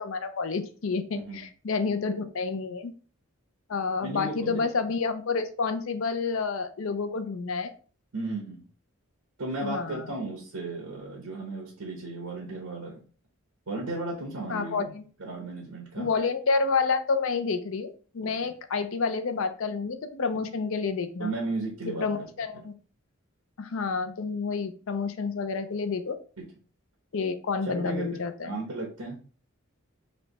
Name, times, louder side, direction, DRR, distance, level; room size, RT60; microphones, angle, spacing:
voice 1, 0.0-2.9 3.7-7.7 9.6-10.1 14.5-15.0 16.0-21.3 22.0-22.7 23.6-26.2 27.1-28.6, left 4 dB, 65° left, 9 dB, 0.5 m, -29 dB
voice 2, 4.0-4.7 8.1-8.6 9.4-13.0 13.7-14.9 15.2-16.1 18.4-18.5 20.3-20.4 21.2-22.3 26.4-26.5 27.7-28.2 28.4-29.2, right 2 dB, 90° right, -2 dB, 1.0 m, -35 dB
3.2 x 2.8 x 4.0 m, 0.40 s
head